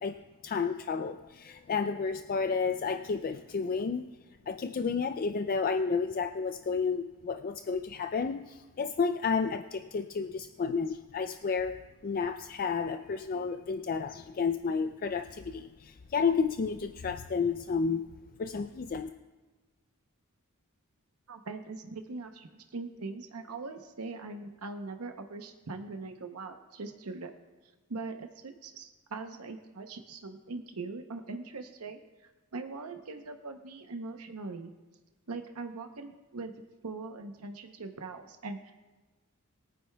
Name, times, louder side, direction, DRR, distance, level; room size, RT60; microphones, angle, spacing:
voice 1, 0.0-4.0 4.5-11.8 12.0-18.0 18.4-19.1, left 5 dB, 40° left, 7 dB, 0.4 m, -31 dB
voice 2, 21.3-27.3 27.9-34.7 35.3-36.5 36.8-38.7, right 3 dB, 85° right, 6 dB, 0.8 m, -41 dB
21.5 x 9.3 x 2.3 m, 1.2 s
head